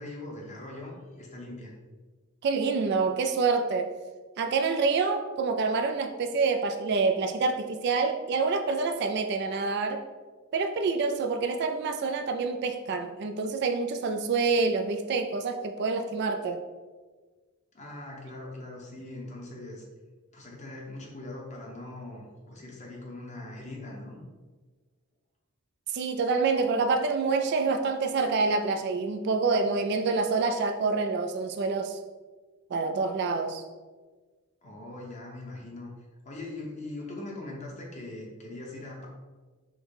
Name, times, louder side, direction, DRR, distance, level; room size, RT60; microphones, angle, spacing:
voice 1, 0.0-1.7 17.7-19.8 20.3-24.2 34.6-35.9 36.2-39.1, left 2 dB, 30° left, -2 dB, 0.9 m, -41 dB
voice 2, 2.4-3.9 4.4-10.0 10.5-16.6 25.9-32.0 32.7-33.6, right 4 dB, 50° right, 6 dB, 0.3 m, -27 dB
4.8 x 2.1 x 4.7 m, 1.3 s
head